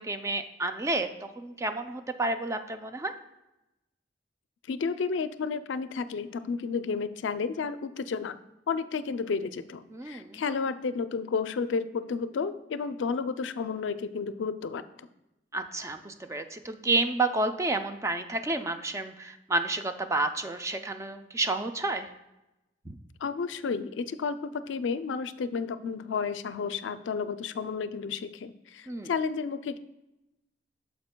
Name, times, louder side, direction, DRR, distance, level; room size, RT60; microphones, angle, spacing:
voice 1, 0.0-3.1 9.9-10.4 15.5-22.1 22.9-23.0 28.9-29.1, right 2 dB, 15° right, 8 dB, 0.4 m, -30 dB
voice 2, 4.7-8.4 8.7-15.1 23.2-29.8, left 5 dB, 90° left, 12 dB, 0.4 m, -32 dB
9.5 x 6.9 x 2.2 m, 0.94 s
head